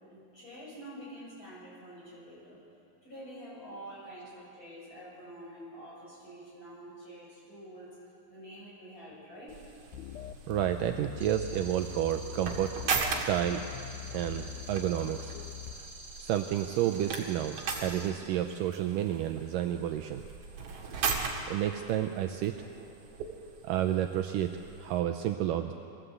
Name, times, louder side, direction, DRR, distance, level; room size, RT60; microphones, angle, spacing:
voice 1, 0.1-2.6 3.0-10.0, equal, 25° left, -6 dB, 7.6 m, -47 dB
sound 1, 9.5-25.0, right 5 dB, 50° right, 2.6 m, -39 dB
sound 2, 9.9-15.7, left 12 dB, 75° left, 2.0 m, -43 dB
voice 2, 10.5-12.8 13.1-13.6 14.1-15.3 16.2-20.2 21.5-22.5 23.6-24.5 24.8-25.7, right 11 dB, 75° right, 6 dB, 2.2 m, -30 dB
sound 3, 11.2-18.1, right 2 dB, 10° right, 3.7 m, -48 dB
22.0 x 16.5 x 8.1 m, 2.5 s
omnidirectional pair, 4.2 m